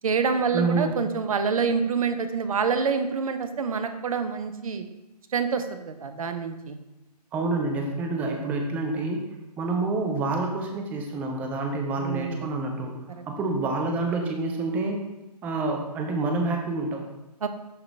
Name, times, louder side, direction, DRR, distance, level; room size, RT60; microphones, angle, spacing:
voice 1, 0.0-4.8 5.3-6.8 12.0-12.5 13.1-13.2 17.4-17.5, right 5 dB, 55° right, 8 dB, 0.8 m, -27 dB
voice 2, 0.5-0.9 7.3-9.2 9.6-12.9 13.3-15.0 15.4-17.0, right 3 dB, 10° right, 3 dB, 0.5 m, -27 dB
11.5 x 3.9 x 3.2 m, 0.94 s
figure-of-eight pair, 135°, 21 cm